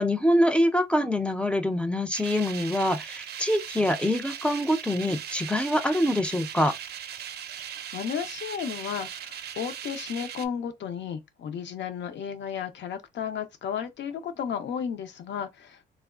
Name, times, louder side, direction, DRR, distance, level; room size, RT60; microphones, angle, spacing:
voice 1, 0.0-6.7, left 1 dB, 5° left, 0.5 m, -25 dB
sound 1, 2.1-10.5, right 9 dB, 55° right, 0.5 m, -39 dB
voice 2, 7.9-15.9, left 8 dB, 65° left, 0.7 m, -33 dB
3.3 x 2.3 x 2.3 m
cardioid pair, 90°, 20 cm